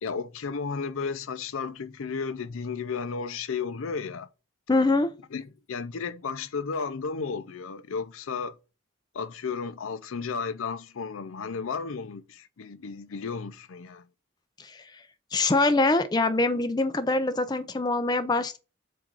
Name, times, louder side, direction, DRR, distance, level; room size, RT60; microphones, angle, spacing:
voice 1, 0.0-4.3 5.3-8.6 9.1-14.1, left 5 dB, 75° left, 0.5 m, -33 dB
voice 2, 4.7-5.1 14.6-14.8 15.3-18.6, left 2 dB, 20° left, 0.4 m, -24 dB
7.5 x 2.5 x 5.2 m
head